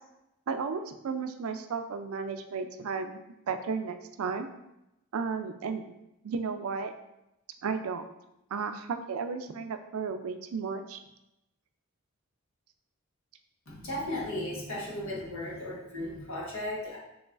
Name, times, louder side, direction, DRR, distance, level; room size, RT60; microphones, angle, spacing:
voice 1, 0.5-3.2 3.5-4.5 5.1-6.0 6.2-6.9 7.6-8.0 8.5-11.0, right 5 dB, 80° right, 8 dB, 0.4 m, -34 dB
voice 2, 13.7-17.0, left 1 dB, 70° left, -4 dB, 1.3 m, -35 dB
6.2 x 3.0 x 2.4 m, 0.88 s
head